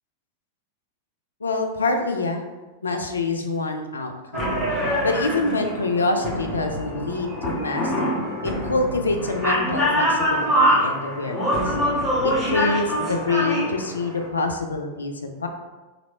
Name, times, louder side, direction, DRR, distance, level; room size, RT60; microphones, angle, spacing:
voice 1, 1.4-2.4 2.8-4.6 5.0-11.8 12.2-15.5, left 3 dB, 75° left, 4 dB, 0.4 m, -26 dB
sound 1, 4.3-14.3, equal, 15° right, 1.2 m, -24 dB
3.0 x 2.8 x 4.2 m, 1.2 s
figure-of-eight pair, 90°, 0 cm